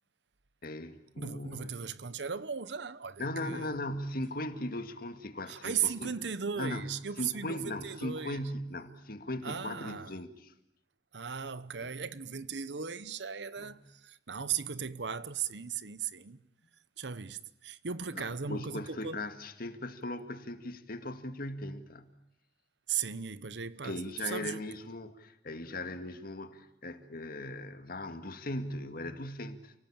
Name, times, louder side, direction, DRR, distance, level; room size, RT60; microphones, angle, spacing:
voice 1, 0.6-1.8 3.2-6.1 6.6-10.5 11.8-11.9 13.6-13.8 18.2-22.1 23.8-29.7, left 1 dB, 55° left, 2.1 m, -39 dB
voice 2, 1.2-3.7 5.5-8.4 9.4-10.1 11.1-16.4 17.0-19.2 22.9-24.6, right 7 dB, 70° right, 0.9 m, -37 dB
30.0 x 18.5 x 8.8 m
head